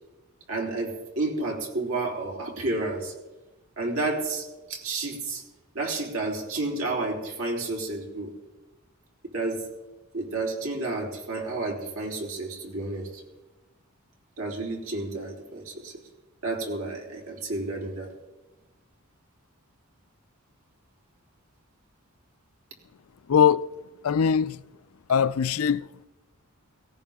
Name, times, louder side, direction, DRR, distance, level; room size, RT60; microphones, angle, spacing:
voice 1, 0.5-3.1 3.8-5.4 5.7-8.3 9.3-9.6 10.1-13.1 14.4-15.9 16.4-18.1, right 2 dB, 75° right, 3.7 m, -31 dB
voice 2, 23.3-23.6 24.0-24.6 25.1-25.8, left 7 dB, 80° left, 0.4 m, -21 dB
18.0 x 17.5 x 3.6 m
head